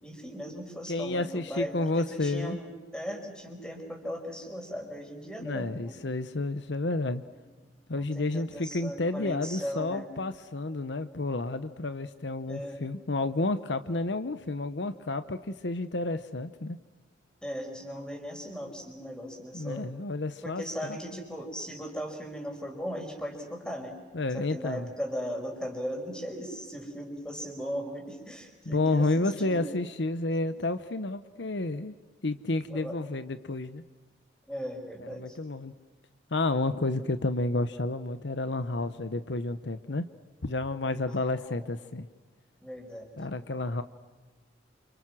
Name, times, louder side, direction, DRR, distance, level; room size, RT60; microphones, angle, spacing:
voice 1, 0.0-6.0 7.6-10.1 12.5-12.8 17.4-19.9 20.4-24.0 24.3-29.8 32.7-33.0 34.5-35.4 41.1-41.7 42.6-43.2, equal, 5° left, 2 dB, 5.4 m, -38 dB
voice 2, 0.9-2.6 5.4-7.2 7.9-16.8 19.5-21.0 24.1-24.9 28.7-31.9 32.2-33.8 35.1-35.7 36.3-40.1 40.4-42.1 43.2-43.8, left 2 dB, 65° left, 12 dB, 1.0 m, -30 dB
29.5 x 28.5 x 6.3 m, 1.3 s
head